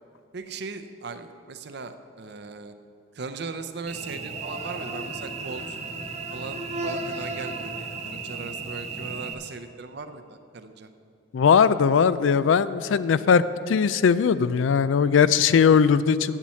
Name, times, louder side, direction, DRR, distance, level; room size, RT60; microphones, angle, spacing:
voice 1, 0.3-2.7 3.1-5.8 6.3-10.9, right 4 dB, 60° right, 9 dB, 0.6 m, -38 dB
Cricket / Buzz, 3.9-9.3, right 3 dB, 35° right, 0.9 m, -34 dB
voice 2, 11.3-16.4, left 6 dB, 75° left, 16 dB, 0.3 m, -19 dB
8.4 x 7.2 x 7.5 m, 2.7 s
head